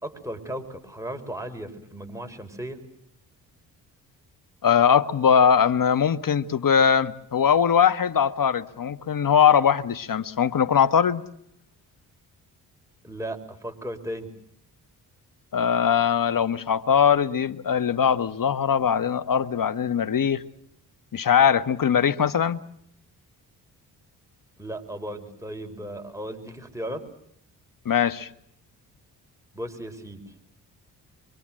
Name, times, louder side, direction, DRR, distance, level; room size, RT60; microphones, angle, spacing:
voice 1, 0.0-2.8 13.0-14.3 24.6-27.1 29.5-30.2, right 1 dB, 5° right, 5.5 m, -35 dB
voice 2, 4.6-11.2 15.5-20.4 21.1-22.6 27.8-28.3, left 7 dB, 45° left, 1.5 m, -21 dB
25.5 x 24.0 x 7.7 m
hypercardioid pair, 45°, 45 cm